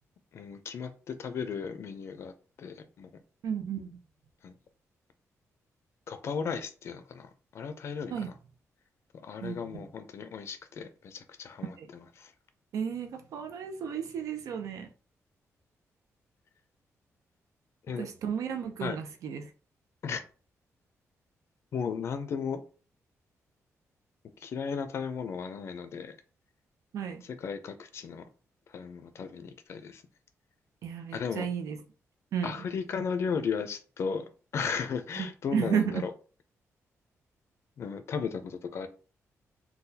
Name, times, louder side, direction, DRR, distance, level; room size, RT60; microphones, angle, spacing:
voice 1, 0.3-2.3 2.6-3.1 4.4-4.5 6.1-8.3 9.2-12.3 17.9-18.1 18.8-19.0 20.0-20.2 21.7-22.6 24.4-26.1 27.4-28.2 28.7-30.0 31.1-31.5 32.4-34.2 34.5-36.1 37.8-38.9, left 6 dB, 55° left, 0.5 m, -35 dB
voice 2, 3.4-4.0 8.1-8.3 9.4-9.9 11.8-11.9 12.7-14.9 18.0-19.5 26.9-27.2 30.8-31.8 32.3-32.6 35.2-36.1, right 7 dB, 85° right, 0.5 m, -33 dB
3.8 x 2.3 x 2.7 m
wide cardioid pair, 165°, 5 cm